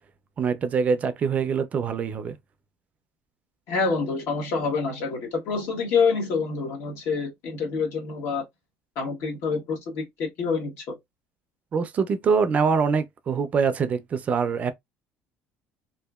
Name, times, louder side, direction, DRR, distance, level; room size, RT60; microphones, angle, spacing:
voice 1, 0.4-2.4 11.7-14.7, right 5 dB, 30° right, 0.3 m, -24 dB
voice 2, 3.7-8.4 9.0-11.0, left 4 dB, 70° left, 1.2 m, -27 dB
2.7 x 2.5 x 2.3 m
cardioid pair, 145°, 4 cm